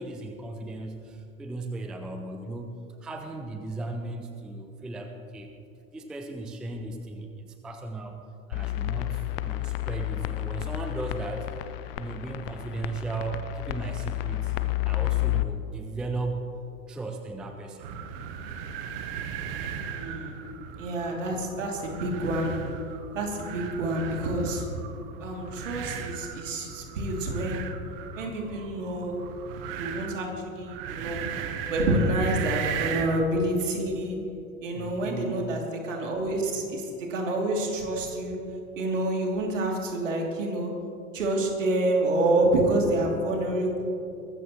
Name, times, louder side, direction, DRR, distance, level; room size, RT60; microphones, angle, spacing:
voice 1, 0.0-2.7 3.0-5.6 5.9-8.2 8.5-11.5 11.9-14.5 14.8-16.4 16.9-17.9 34.7-35.6, right 2 dB, ahead, 5 dB, 0.4 m, -36 dB
sound 1, 8.5-15.4, left 17 dB, 45° left, 0.7 m, -30 dB
sound 2, 17.8-33.3, right 7 dB, 40° right, 1.2 m, -37 dB
voice 2, 19.8-20.4 20.8-22.5 23.1-24.6 25.2-27.7 28.2-29.2 29.7-31.2 31.7-34.2 34.6-38.4 38.8-40.7 41.1-43.8, right 1 dB, 60° right, 0 dB, 2.9 m, -28 dB
22.5 x 14.0 x 3.1 m, 2.7 s
figure-of-eight pair, 90°, 42 cm